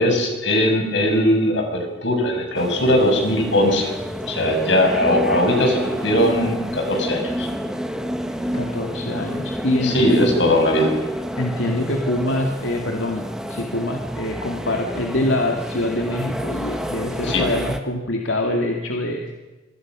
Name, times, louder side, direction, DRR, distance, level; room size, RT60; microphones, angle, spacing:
voice 1, 0.0-3.9 4.3-7.5 9.8-10.9 17.3-17.4, left 1 dB, 70° left, 3 dB, 7.0 m, -19 dB
sound 1, 2.5-17.8, equal, 5° right, 1.8 m, -29 dB
voice 2, 8.5-10.3 11.4-19.3, left 1 dB, 90° left, 2 dB, 2.5 m, -24 dB
26.5 x 25.0 x 6.3 m, 1.2 s
head